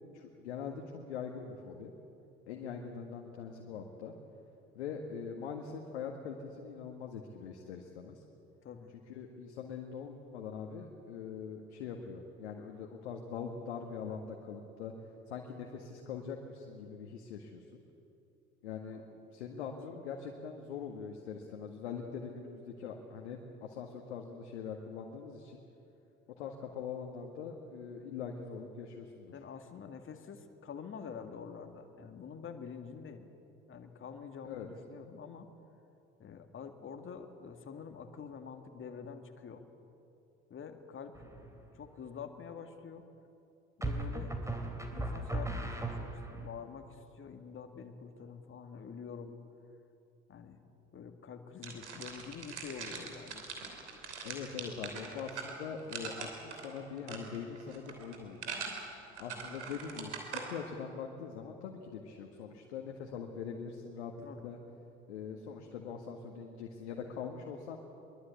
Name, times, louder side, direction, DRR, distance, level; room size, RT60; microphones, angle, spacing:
voice 1, 0.1-1.9 2.5-4.1 4.7-8.2 9.1-14.9 15.3-17.8 18.6-19.0 19.3-25.6 26.4-29.3 34.4-34.7 54.2-58.6 59.2-64.6 65.1-67.8, left 6 dB, 75° left, 2 dB, 1.8 m, -43 dB
voice 2, 8.6-8.9 18.9-19.0 19.6-19.7 29.3-33.3 33.7-35.5 36.2-39.6 40.5-43.0 43.8-44.4 44.6-49.4 50.3-50.6 50.9-53.4 64.2-64.5, left 6 dB, 35° left, 5 dB, 2.1 m, -47 dB
sound 1, 41.2-41.7 43.8-46.5, right 2 dB, 10° right, 3.4 m, -37 dB
sound 2, 51.6-60.4, right 5 dB, 80° right, 3.1 m, -42 dB
23.0 x 22.0 x 8.5 m, 2.8 s
figure-of-eight pair, 55°, 34 cm